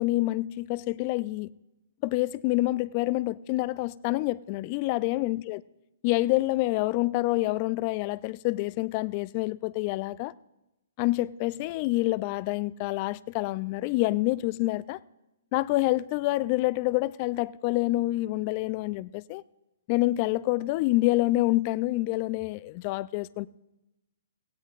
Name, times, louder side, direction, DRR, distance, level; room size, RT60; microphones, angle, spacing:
voice 1, 0.0-1.5 2.0-5.6 6.0-10.3 11.0-15.0 15.5-19.4 19.9-23.5, left 19 dB, 35° left, 0.3 m, -27 dB
18.0 x 16.0 x 2.4 m
hypercardioid pair, 140°, 0 cm